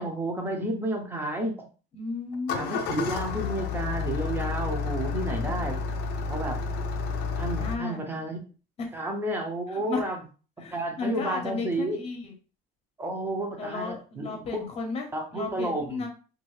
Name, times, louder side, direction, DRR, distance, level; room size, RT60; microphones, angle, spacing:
voice 1, 0.0-1.7 2.5-5.8 6.3-6.6 7.4-8.4 8.9-10.2 10.7-12.0 13.0-14.6 15.1-16.1, right 1 dB, 10° right, 3 dB, 0.7 m, -31 dB
voice 2, 1.9-2.9 7.5-8.2 8.8-8.9 9.7-10.0 10.6-12.3 13.6-16.1, left 4 dB, 30° left, 3 dB, 1.0 m, -34 dB
Engine starting, 2.3-7.8, left 5 dB, 55° left, 0.6 m, -30 dB
2.7 x 2.6 x 3.1 m, 0.36 s
cardioid pair, 145°, 20 cm